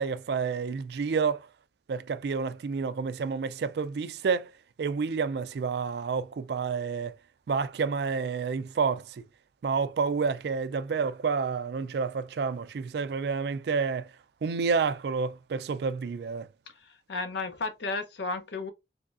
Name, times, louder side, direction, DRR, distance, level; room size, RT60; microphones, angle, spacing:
voice 1, 0.0-1.5 1.9-4.5 4.8-7.1 7.5-9.2 9.6-14.1 14.4-16.5, right 5 dB, 65° right, 0.3 m, -29 dB
voice 2, 16.8-18.7, left 3 dB, 75° left, 0.7 m, -33 dB
3.3 x 3.1 x 2.5 m
head